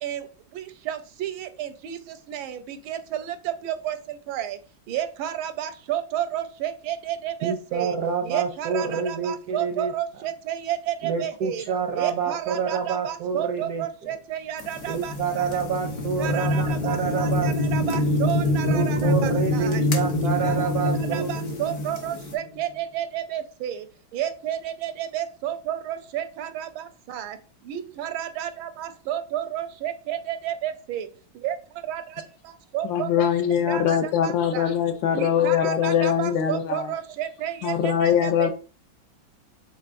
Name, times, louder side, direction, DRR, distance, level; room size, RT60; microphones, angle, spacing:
voice 1, 0.5-4.6 4.9-7.9 8.2-11.6 12.0-15.5 16.0-19.8 20.2-23.9 24.1-27.4 27.6-31.1 31.3-31.6 31.9-33.3 33.7-34.7 35.1-38.5, right 11 dB, 85° right, 1.4 m, -31 dB
voice 2, 7.4-9.9 11.0-13.9 14.9-17.5 18.6-21.3, right 6 dB, 70° right, 0.9 m, -28 dB
sound 1, 14.6-22.4, left 3 dB, 50° left, 1.0 m, -41 dB
sound 2, 14.9-22.6, left 1 dB, 35° left, 0.6 m, -25 dB
voice 3, 32.8-36.9 37.6-38.5, left 8 dB, 75° left, 1.3 m, -22 dB
5.6 x 3.6 x 2.5 m
omnidirectional pair, 2.2 m